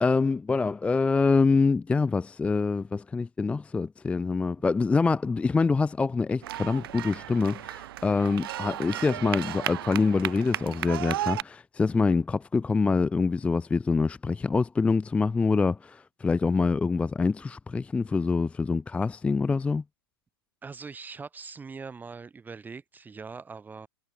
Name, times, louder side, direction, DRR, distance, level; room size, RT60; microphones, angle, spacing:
voice 1, 0.0-19.8, left 4 dB, 10° left, 0.5 m, -25 dB
sound 1, 6.4-11.4, right 13 dB, 65° right, 0.4 m, -34 dB
voice 2, 20.6-23.9, right 5 dB, 15° right, 5.0 m, -42 dB
hypercardioid pair, 115°, 13 cm